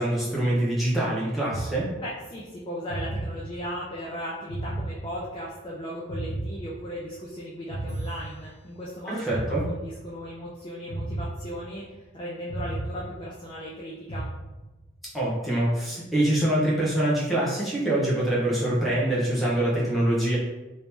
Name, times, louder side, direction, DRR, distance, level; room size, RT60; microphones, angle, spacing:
voice 1, 0.0-1.9 9.1-9.6 15.1-20.4, right 1 dB, ahead, -8 dB, 0.8 m, -24 dB
sound 1, 1.5-2.4 2.9-3.9 4.5-5.6 6.1-7.3 7.7-8.9 9.3-10.3 10.9-12.0 12.5-13.7 14.1-15.0, right 1 dB, 60° left, 0.8 m, -34 dB
voice 2, 2.0-14.2, equal, 25° left, -6 dB, 0.4 m, -37 dB
2.9 x 2.7 x 3.5 m, 1.1 s
head